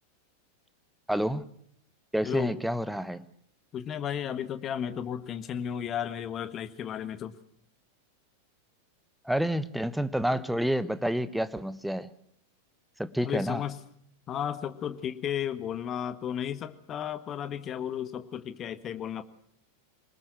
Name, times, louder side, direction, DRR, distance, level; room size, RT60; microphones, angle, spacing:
voice 1, 1.1-1.5 2.1-3.3 9.2-12.1 13.0-13.6, equal, ahead, 15 dB, 1.1 m, -29 dB
voice 2, 2.2-2.6 3.7-7.4 10.3-10.4 13.2-13.8 14.3-19.2, left 9 dB, 30° left, 12 dB, 1.6 m, -34 dB
24.5 x 20.5 x 7.8 m, 0.67 s
figure-of-eight pair, 90°, 0 cm